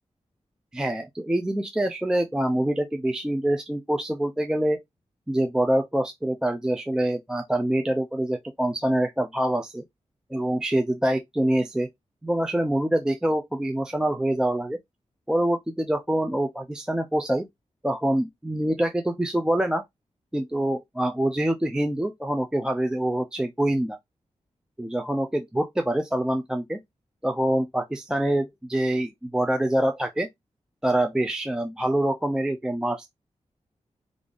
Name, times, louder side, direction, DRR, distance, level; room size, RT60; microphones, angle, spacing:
voice 1, 0.7-4.8 5.3-9.8 10.3-11.9 12.2-14.8 15.3-17.5 17.8-19.8 20.3-24.0 24.8-26.8 27.2-30.3 30.8-33.1, right 1 dB, 5° right, 0.3 m, -25 dB
3.7 x 2.4 x 3.3 m
wide cardioid pair, 160°, 12 cm